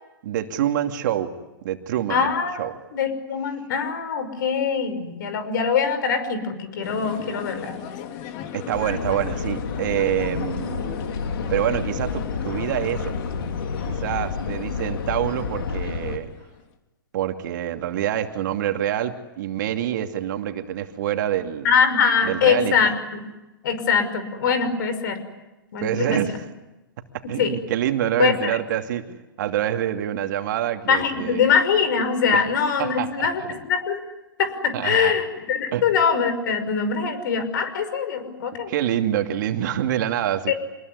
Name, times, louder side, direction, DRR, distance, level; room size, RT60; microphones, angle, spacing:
voice 1, 0.2-1.3 1.6-2.3 2.6-2.7 8.5-11.0 11.5-13.1 13.8-16.3 17.1-21.7 22.2-22.9 25.8-26.5 27.1-31.4 32.3-32.4 32.8-33.5 34.7-35.2 35.7-35.8 38.7-40.5, right 11 dB, 55° right, 6 dB, 2.7 m, -26 dB
voice 2, 2.1-2.6 2.9-7.7 21.6-23.3 23.6-25.2 25.7-26.2 27.4-27.6 28.2-28.5 30.9-34.0 34.4-38.7 40.5-40.6, left 6 dB, 60° left, 11 dB, 5.7 m, -23 dB
sound 1, 6.8-16.6, left 10 dB, 40° left, 3.1 m, -38 dB
sound 2, 8.7-16.2, left 5 dB, 75° left, 3.1 m, -30 dB
27.0 x 21.0 x 9.6 m, 1.0 s
hypercardioid pair, 125°, 12 cm